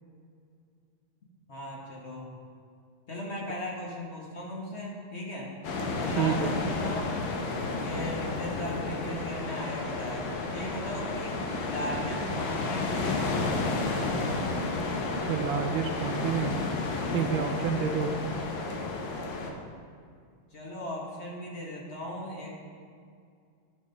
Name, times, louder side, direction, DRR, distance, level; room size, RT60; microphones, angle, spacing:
voice 1, 1.5-2.3 3.1-5.5 6.0-7.1 7.8-13.9 18.1-18.2 20.5-22.5, left 1 dB, 35° left, -3 dB, 1.5 m, -38 dB
sound 1, 5.6-19.5, left 3 dB, 70° left, 1.6 m, -31 dB
voice 2, 6.2-6.5 15.2-16.6 17.1-18.3, right 7 dB, 75° right, 5 dB, 1.3 m, -29 dB
11.0 x 4.9 x 5.3 m, 2.3 s
omnidirectional pair, 2.4 m